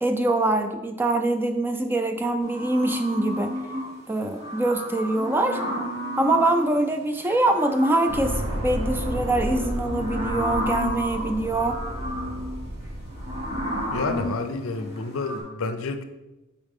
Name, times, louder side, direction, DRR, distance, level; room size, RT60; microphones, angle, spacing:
voice 1, 0.0-3.6 4.1-5.6 6.2-11.8, right 2 dB, 10° right, 6 dB, 0.3 m, -24 dB
sound 1, 2.4-3.9 4.3-6.7 7.2-15.4, equal, 30° right, 2.1 m, -32 dB
sound 2, 8.1-14.3, equal, 80° right, 1.1 m, -32 dB
voice 2, 13.9-16.0, left 3 dB, 75° left, 9 dB, 0.6 m, -29 dB
8.6 x 4.1 x 3.6 m, 1.1 s
head